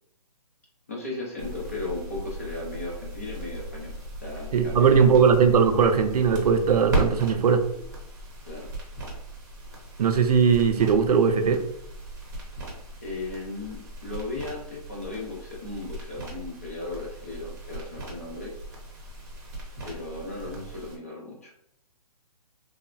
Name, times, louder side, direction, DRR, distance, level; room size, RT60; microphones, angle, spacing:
voice 1, 0.9-5.2 8.4-8.7 13.0-18.5 19.8-21.5, left 2 dB, 25° left, -2 dB, 0.4 m, -36 dB
sound 1, 1.4-21.0, right 2 dB, 30° right, 0.7 m, -37 dB
voice 2, 4.5-7.7 10.0-11.6, right 6 dB, 70° right, 7 dB, 0.4 m, -19 dB
3.1 x 2.0 x 2.4 m, 0.77 s
hypercardioid pair, 175°, 20 cm